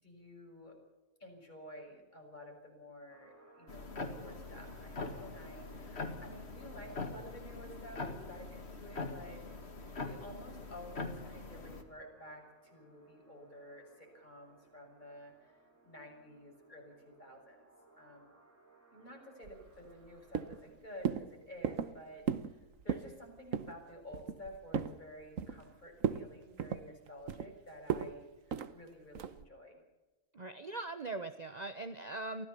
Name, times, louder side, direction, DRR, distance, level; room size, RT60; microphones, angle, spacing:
voice 1, 0.0-0.8 1.2-9.4 10.0-17.7 18.0-18.3 18.9-29.8, equal, 35° left, 1 dB, 6.7 m, -52 dB
sound 1, 3.1-20.6, right 2 dB, 10° right, 5.6 m, -63 dB
sound 2, 3.7-11.8, left 3 dB, 50° left, 2.4 m, -43 dB
sound 3, 19.4-20.1 20.3-20.7 21.1-21.3 21.6-21.9 22.3-22.5 22.8-23.1 23.5-23.8 24.1-25.0 25.4-25.7 26.0-26.3 26.6-27.5 27.9-28.1 28.5-28.7 29.2-29.4, right 7 dB, 70° right, 1.4 m, -35 dB
voice 2, 30.3-32.5, right 2 dB, 35° right, 9 dB, 0.9 m, -41 dB
24.0 x 16.5 x 6.9 m, 1.1 s
omnidirectional pair, 1.4 m